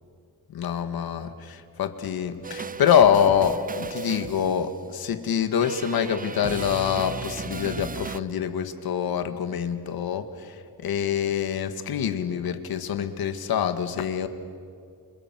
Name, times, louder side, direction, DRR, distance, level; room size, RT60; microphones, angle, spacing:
voice 1, 0.5-14.3, left 8 dB, 85° left, 9 dB, 1.9 m, -25 dB
sound 1, 2.4-4.8 5.6-8.2, right 5 dB, 25° right, 0.7 m, -35 dB
28.0 x 27.5 x 7.6 m, 2.2 s
cardioid pair, 105°, 36 cm